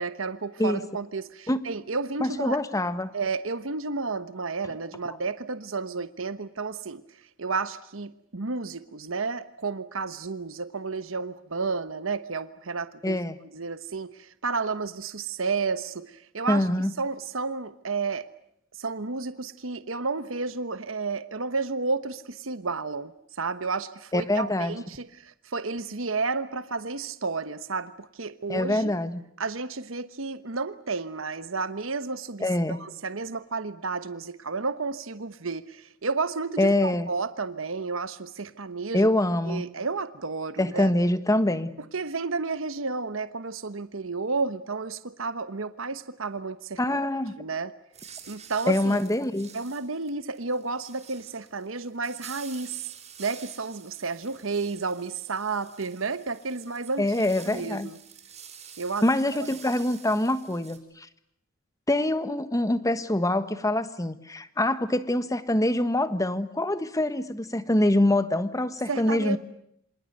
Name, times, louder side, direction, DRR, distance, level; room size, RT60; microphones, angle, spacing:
voice 1, 0.0-2.6 3.1-13.2 13.5-16.6 17.0-18.3 18.8-28.9 29.4-39.1 39.5-40.9 41.9-47.0 47.4-47.7 48.3-49.0 49.5-52.9 53.2-58.0 58.8-59.1 59.4-59.5 68.9-69.4, right 4 dB, 75° right, 12 dB, 1.2 m, -32 dB
voice 2, 2.2-3.1 5.1-5.2 13.0-13.4 16.5-16.9 24.1-24.8 28.5-29.2 32.4-32.8 36.6-37.1 38.9-39.6 40.6-41.7 46.8-47.4 48.7-49.5 57.0-57.9 59.0-61.1 61.9-69.4, left 1 dB, 15° left, 12 dB, 1.5 m, -25 dB
sound 1, 47.9-60.8, right 8 dB, 35° right, 5.6 m, -48 dB
28.0 x 26.0 x 8.0 m, 0.75 s
head